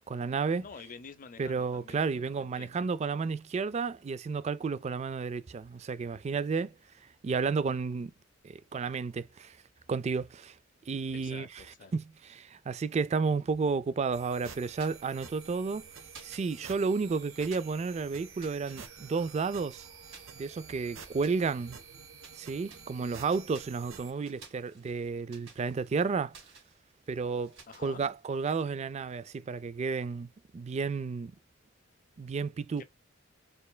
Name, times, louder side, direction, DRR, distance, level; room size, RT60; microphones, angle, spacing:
voice 1, 0.1-0.6 1.4-6.7 7.2-8.1 8.4-9.6 9.9-10.5 10.9-11.6 11.9-15.9 16.2-19.8 20.4-21.8 22.4-26.3 27.1-30.3 30.5-31.4 32.2-32.8, right 4 dB, 35° right, 0.3 m, -32 dB
voice 2, 0.6-2.8 11.1-11.9 27.7-28.0 32.8-32.9, left 5 dB, 45° left, 0.5 m, -49 dB
sound 1, 14.1-24.1, right 6 dB, 85° right, 0.9 m, -49 dB
sound 2, 14.7-15.7 16.1-17.1 17.4-19.5 20.1-22.4 22.7-28.5, right 5 dB, 70° right, 2.3 m, -56 dB
4.5 x 3.2 x 2.2 m
head